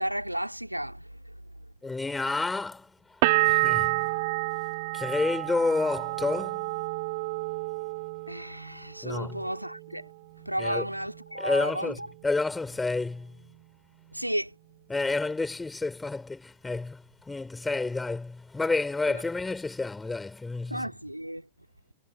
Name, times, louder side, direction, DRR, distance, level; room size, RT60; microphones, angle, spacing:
voice 1, 0.0-1.3 8.3-10.1 10.4-12.1 14.1-14.6 19.1-19.2 20.7-21.5, right 1 dB, 90° right, 2.7 m, -33 dB
voice 2, 1.8-2.9 3.4-4.1 4.9-6.7 9.0-9.4 10.6-10.9 11.4-13.4 14.9-20.9, left 3 dB, 10° left, 5.8 m, -30 dB
sound 1, 3.2-8.9 9.2-9.9, right 24 dB, 50° right, 2.0 m, -29 dB
figure-of-eight pair, 90°, 0 cm